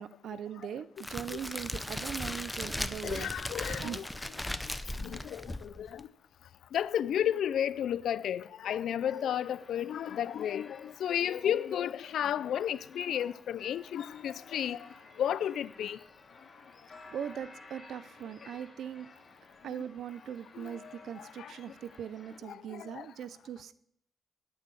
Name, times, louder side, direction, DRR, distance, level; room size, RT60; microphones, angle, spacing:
voice 1, 0.0-3.3 3.8-4.0 17.1-19.1 19.6-23.7, right 9 dB, 80° right, 0.6 m, -40 dB
Crackle, 1.0-6.0, left 1 dB, 10° left, 0.6 m, -37 dB
voice 2, 3.0-4.0 5.0-6.0 6.7-14.8 15.2-16.0 20.6-20.7 21.4-21.5 22.5-23.1, left 10 dB, 85° left, 0.4 m, -32 dB
sound 1, 9.1-22.4, left 3 dB, 45° left, 2.6 m, -55 dB
9.7 x 8.7 x 6.9 m
cardioid pair, 90°, 0 cm